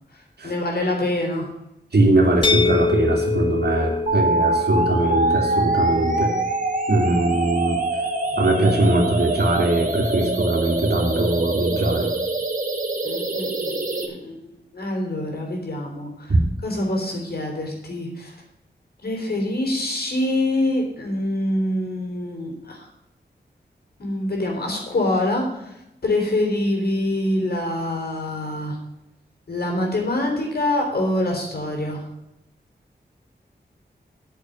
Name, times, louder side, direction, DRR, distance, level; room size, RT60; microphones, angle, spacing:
voice 1, 0.1-1.5 8.6-8.7 13.0-13.8 14.1-16.3 16.6-18.3 19.0-22.9 24.0-28.8 29.5-32.0, left 1 dB, 60° left, 0 dB, 4.0 m, -25 dB
voice 2, 1.9-6.3 6.9-7.8 8.4-12.1 16.3-16.4, right 2 dB, 65° right, 1 dB, 2.9 m, -20 dB
sound 1, 2.4-8.2, left 4 dB, 30° left, 0.5 m, -27 dB
sound 2, 4.1-14.1, right 2 dB, 50° right, 1.9 m, -24 dB
9.0 x 7.0 x 7.9 m, 0.88 s
wide cardioid pair, 95°, 18 cm